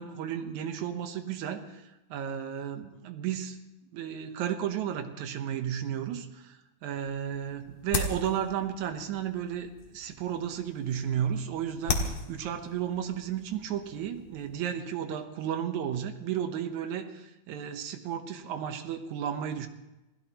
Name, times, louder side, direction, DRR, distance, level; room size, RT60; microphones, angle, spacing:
voice 1, 0.0-3.6 3.9-19.7, right 9 dB, 70° right, 7 dB, 2.0 m, -33 dB
sound 1, 6.9-14.6, left 4 dB, 55° left, 2.5 m, -38 dB
28.0 x 16.0 x 2.9 m, 0.99 s
omnidirectional pair, 4.1 m